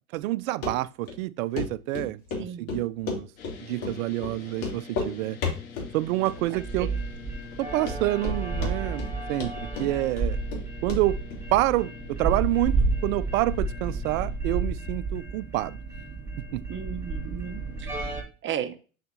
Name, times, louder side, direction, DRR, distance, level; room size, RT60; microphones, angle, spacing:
voice 1, 0.1-3.3 3.7-5.4 5.9-6.9 7.6-9.0 9.3-10.4 10.8-11.2 11.5-15.8 16.5-16.6, right 17 dB, 70° right, 0.6 m, -27 dB
Run, 0.6-0.7 1.1-1.2 1.6-1.7 1.9-3.6 3.8-4.0 4.2-4.3 4.6-5.1 5.4-5.9 6.3-6.7 7.0-7.1 7.5-7.6 7.9-8.4 8.6-9.1 9.4-10.6 10.9-11.0 11.3-11.4, left 4 dB, 55° left, 2.8 m, -32 dB
voice 2, 2.4-2.7 6.8-7.0 16.7-17.9 18.4-18.8, right 9 dB, 30° right, 0.8 m, -34 dB
sound 1, 3.4-14.4, left 5 dB, 80° left, 2.6 m, -45 dB
sound 2, 6.1-18.2, right 3 dB, 5° right, 1.9 m, -31 dB
6.7 x 6.0 x 2.6 m
hypercardioid pair, 90°, 42 cm